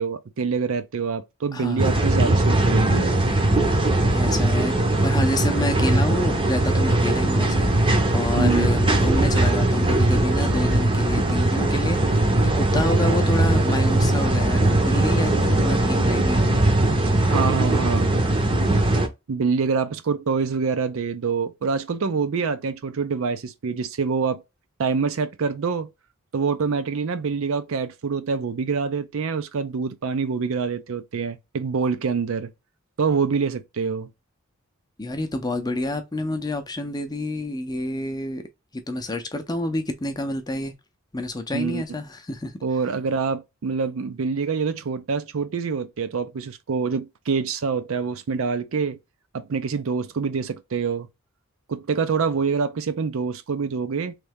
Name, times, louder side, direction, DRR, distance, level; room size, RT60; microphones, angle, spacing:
voice 1, 0.0-3.1 8.4-8.7 17.2-18.2 19.3-24.4 24.8-25.9 26.3-32.5 33.0-34.1 41.5-41.8 42.6-49.0 49.3-51.1 51.7-54.2, right 5 dB, 65° right, 0.5 m, -26 dB
voice 2, 1.5-1.9 4.1-7.7 8.1-12.0 12.6-16.4 35.0-38.4 38.7-40.7 41.1-42.9, left 1 dB, 20° left, 0.6 m, -28 dB
sound 1, 1.8-19.1, right 1 dB, 25° right, 0.7 m, -20 dB
3.2 x 2.7 x 3.5 m
head